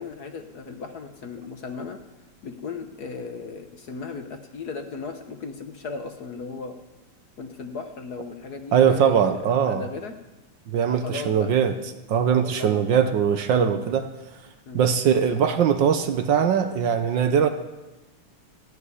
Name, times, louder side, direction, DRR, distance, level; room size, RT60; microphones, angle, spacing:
voice 1, 0.0-2.0 2.4-6.8 7.4-10.1 10.9-11.5 12.4-12.9 14.7-14.9, left 4 dB, 55° left, 6 dB, 1.4 m, -36 dB
voice 2, 8.7-9.8 10.7-11.7 12.1-14.1 14.7-17.5, right 8 dB, 65° right, 8 dB, 1.4 m, -21 dB
15.0 x 7.9 x 9.8 m, 1.1 s
omnidirectional pair, 2.4 m